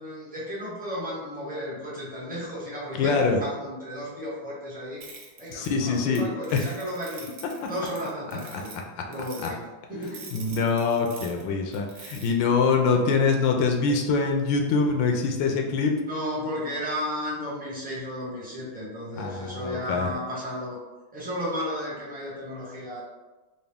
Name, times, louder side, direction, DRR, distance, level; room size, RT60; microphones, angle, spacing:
voice 1, 0.0-5.0 5.4-7.3 7.7-8.7 9.1-10.4 16.1-20.8 21.1-23.0, equal, 5° right, -8 dB, 0.7 m, -34 dB
voice 2, 3.0-3.4 5.5-6.2 6.5-6.6 8.5-8.6 9.4-9.5 10.3-15.9 19.2-20.1, left 4 dB, 80° left, 2 dB, 1.3 m, -24 dB
sound 1, 5.0-6.2 6.4-8.8 9.1-9.5 10.0-11.4 11.7-12.3, right 4 dB, 65° right, 1.2 m, -44 dB
4.0 x 2.3 x 3.4 m, 1.1 s
omnidirectional pair, 2.1 m